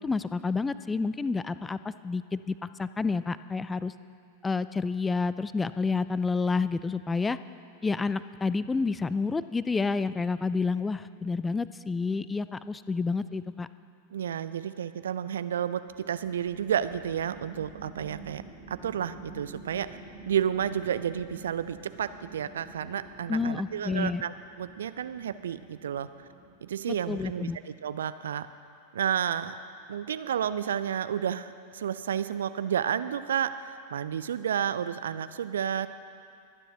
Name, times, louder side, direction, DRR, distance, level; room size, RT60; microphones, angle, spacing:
voice 1, 0.0-3.9 4.4-7.4 7.8-13.7 23.3-24.2 26.9-27.6, left 4 dB, 10° left, 15 dB, 0.3 m, -29 dB
voice 2, 14.1-18.4 18.7-19.9 20.3-26.1 26.6-28.5 28.9-29.5 29.9-35.9, right 9 dB, 65° right, 13 dB, 0.4 m, -31 dB
sound 1, 15.9-28.0, right 4 dB, 10° right, 3.0 m, -49 dB
24.0 x 9.7 x 3.0 m, 2.3 s
figure-of-eight pair, 90°, 0 cm